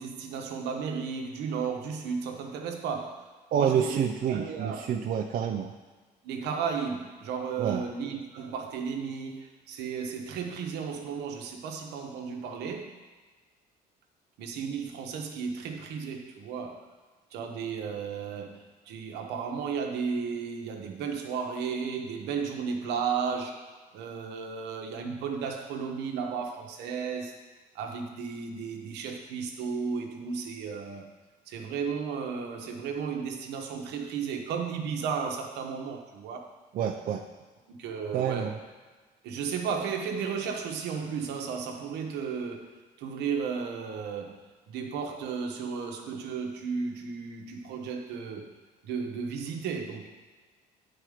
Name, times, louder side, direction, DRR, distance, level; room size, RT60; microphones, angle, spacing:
voice 1, 0.0-3.3 3.5-4.9 6.2-12.9 14.4-16.8 17.3-27.4 27.7-31.1 31.5-36.5 37.7-38.6 39.2-42.7 43.0-44.4 44.7-48.5 48.8-50.1, right 6 dB, 85° right, 3 dB, 1.1 m, -34 dB
voice 2, 3.5-5.7 7.6-7.9 36.7-37.2 38.1-38.5, right 8 dB, 60° right, 3 dB, 0.5 m, -28 dB
9.1 x 4.5 x 5.0 m, 1.4 s
cardioid pair, 110°, 17 cm